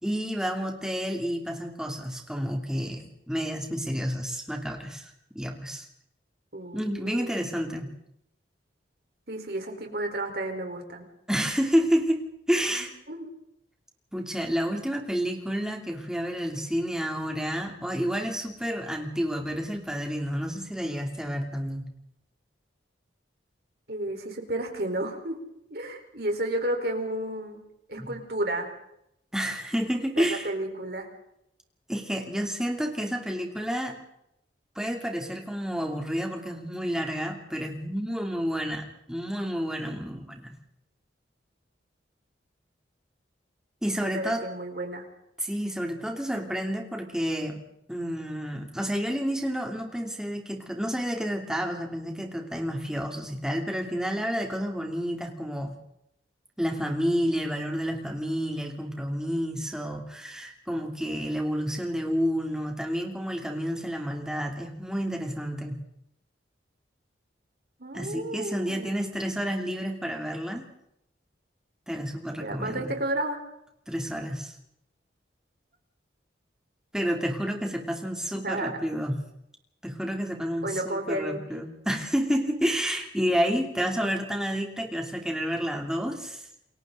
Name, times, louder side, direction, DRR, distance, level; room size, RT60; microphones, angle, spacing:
voice 1, 0.0-5.9 6.7-7.9 11.3-12.9 14.1-21.8 28.0-28.1 29.3-30.5 31.9-34.0 34.8-40.5 43.8-44.5 45.4-47.6 47.9-55.7 56.6-65.8 67.9-70.7 71.9-72.9 73.9-74.5 76.9-79.2 79.8-86.5, equal, 5° right, 2 dB, 2.9 m, -30 dB
voice 2, 6.5-7.8 9.3-11.1 12.7-13.3 23.9-25.4 25.7-27.6 27.9-28.7 30.2-31.1 44.0-45.0 67.8-69.2 72.4-73.4 78.4-78.8 80.6-81.6, right 1 dB, 55° right, 3 dB, 4.3 m, -32 dB
29.0 x 22.5 x 4.0 m, 0.79 s
head